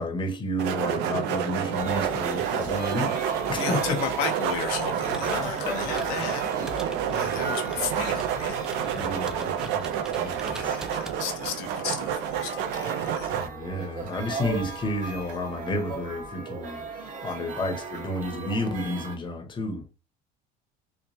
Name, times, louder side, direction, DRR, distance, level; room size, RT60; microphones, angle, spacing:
voice 1, 0.0-4.0 6.6-8.2 8.9-10.8 13.3-19.9, left 1 dB, 25° left, 0.8 m, -32 dB
sound 1, 0.6-13.5, right 8 dB, 65° right, 0.5 m, -29 dB
sound 2, 1.7-19.1, right 4 dB, 45° right, 1.2 m, -38 dB
voice 2, 3.5-6.5 7.1-8.8 10.5-13.3, left 9 dB, 80° left, 0.6 m, -34 dB
Computer keyboard, 4.7-11.6, equal, 5° right, 0.4 m, -46 dB
3.0 x 2.1 x 2.7 m
supercardioid pair, 110°, 19 cm